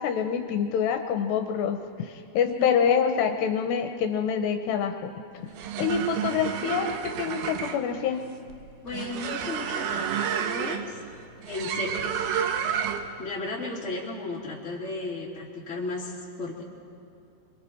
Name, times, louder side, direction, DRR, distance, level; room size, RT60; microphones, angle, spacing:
voice 1, 0.0-5.4 5.8-6.9 7.2-8.2, left 7 dB, 80° left, 5 dB, 3.0 m, -26 dB
sound 1, 5.4-13.2, right 8 dB, 75° right, 2.8 m, -31 dB
voice 2, 8.8-11.0 11.4-12.3 13.2-16.6, left 3 dB, 20° left, -5 dB, 3.2 m, -35 dB
29.0 x 23.0 x 4.7 m, 2.6 s
omnidirectional pair, 5.0 m